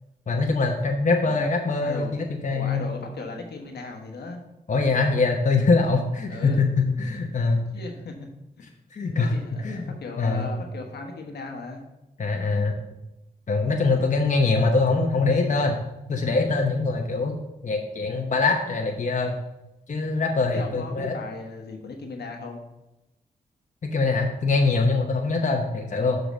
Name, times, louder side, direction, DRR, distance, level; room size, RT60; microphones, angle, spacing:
voice 1, 0.3-2.8 4.7-7.7 8.9-9.3 9.6-10.5 12.2-12.8 13.5-15.8 16.1-17.4 17.6-19.4 19.9-21.1 23.8-26.2, left 3 dB, 50° left, 1 dB, 0.9 m, -23 dB
voice 2, 1.2-2.1 2.5-4.4 6.3-6.6 7.7-8.3 9.1-11.8 20.5-22.6 25.6-25.7, left 3 dB, 90° left, 3 dB, 1.2 m, -37 dB
6.8 x 3.9 x 6.2 m, 0.95 s
cardioid pair, 55°, 17 cm